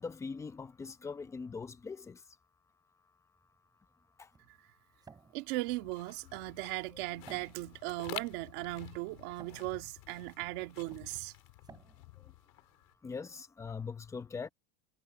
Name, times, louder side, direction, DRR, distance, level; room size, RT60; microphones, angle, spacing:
voice 1, 0.0-2.4 4.2-4.3 6.9-7.2 12.2-12.3 13.0-14.5, left 5 dB, 10° left, 0.8 m, -42 dB
sound 1, 3.4-13.2, right 5 dB, 15° right, 5.8 m, -60 dB
voice 2, 5.3-11.3, right 21 dB, 60° right, 2.0 m, -38 dB
sound 2, 5.7-12.9, left 26 dB, 80° left, 4.1 m, -50 dB
cardioid pair, 180°, 29 cm